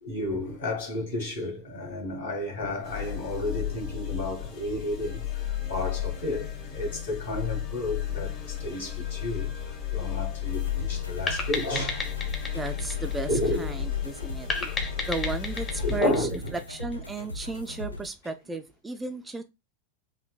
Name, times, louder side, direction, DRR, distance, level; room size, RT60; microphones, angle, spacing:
voice 1, 0.0-12.1 13.3-13.7 14.6-14.9 15.8-16.4, left 1 dB, 65° left, 1.6 m, -32 dB
sound 1, 2.8-16.0, left 10 dB, 40° left, 1.2 m, -33 dB
sound 2, 10.5-18.1, left 1 dB, 80° left, 0.4 m, -39 dB
sound 3, 11.3-13.8 14.5-17.0, left 3 dB, 20° left, 0.8 m, -33 dB
voice 2, 12.5-14.5 15.0-19.4, right 3 dB, 10° right, 0.3 m, -34 dB
3.8 x 2.6 x 2.3 m
figure-of-eight pair, 90°, 0 cm